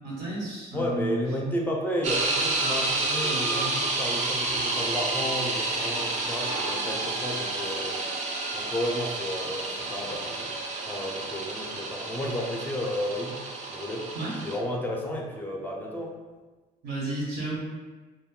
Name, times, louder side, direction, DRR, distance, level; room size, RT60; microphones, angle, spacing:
voice 1, 0.0-1.2 14.1-14.4 16.8-17.6, right 2 dB, 85° right, -5 dB, 1.2 m, -32 dB
voice 2, 0.7-8.1 8.5-10.6 10.9-14.1 14.4-16.1, equal, 10° left, -1 dB, 0.5 m, -32 dB
sound 1, 2.0-14.6, right 2 dB, 45° right, 0.5 m, -30 dB
2.2 x 2.1 x 3.6 m, 1.3 s
cardioid pair, 110°, 17 cm